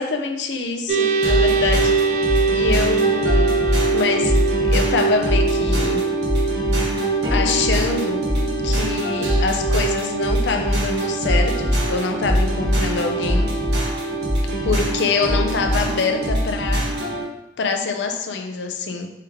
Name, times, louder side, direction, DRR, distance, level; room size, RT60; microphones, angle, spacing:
voice 1, 0.0-2.0 2.5-3.5 3.9-4.4 4.6-6.0 7.3-8.2 8.6-13.5 14.6-16.9 17.6-19.1, left 4 dB, 90° left, 5 dB, 0.5 m, -25 dB
sound 1, 0.9-15.6, right 4 dB, 40° right, 0.6 m, -25 dB
sound 2, 1.2-17.2, right 1 dB, 80° right, 1.2 m, -22 dB
4.7 x 3.5 x 3.0 m, 0.90 s
head